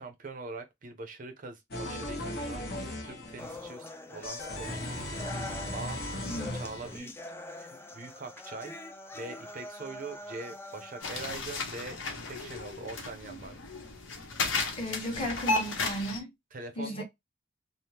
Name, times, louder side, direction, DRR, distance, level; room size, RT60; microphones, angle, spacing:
voice 1, 0.0-5.2 5.7-6.0 6.5-7.1 7.5-8.7 9.1-12.0 12.3-13.5 16.5-17.0, right 3 dB, 45° right, 0.5 m, -43 dB
sound 1, 1.7-3.7 4.2-7.0, left 1 dB, 55° left, 0.9 m, -37 dB
sound 2, 3.4-11.4, left 2 dB, 10° left, 0.4 m, -44 dB
voice 2, 6.2-6.6 14.8-16.3 16.8-17.0, equal, 30° left, 1.1 m, -35 dB
sound 3, 11.0-16.2, left 3 dB, 80° left, 0.9 m, -34 dB
3.4 x 2.0 x 2.8 m
head